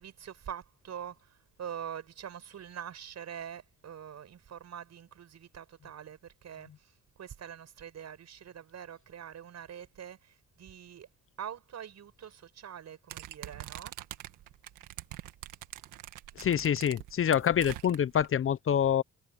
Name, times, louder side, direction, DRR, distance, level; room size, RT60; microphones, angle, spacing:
voice 1, 0.0-11.1 11.4-14.0, right 9 dB, 60° right, 7.3 m, -44 dB
sound 1, 13.1-18.3, right 14 dB, 90° right, 1.8 m, -44 dB
voice 2, 16.4-19.0, left 9 dB, 45° left, 0.7 m, -26 dB
cardioid pair, 90°, 30 cm